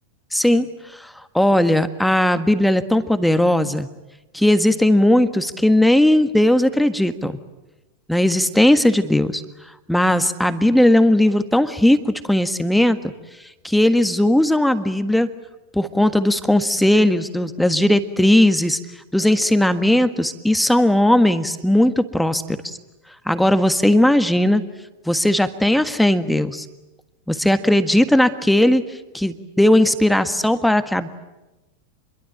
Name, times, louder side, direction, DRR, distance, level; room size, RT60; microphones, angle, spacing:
voice 1, 0.3-0.7 1.0-3.9 4.3-7.4 8.1-9.4 9.9-13.0 13.6-15.3 15.7-18.8 19.1-22.8 23.2-24.6 25.1-26.6 27.3-28.8 29.1-31.1, left 1 dB, ahead, 10 dB, 1.6 m, -17 dB
27.5 x 22.5 x 9.1 m, 1.0 s
figure-of-eight pair, 90°, 0 cm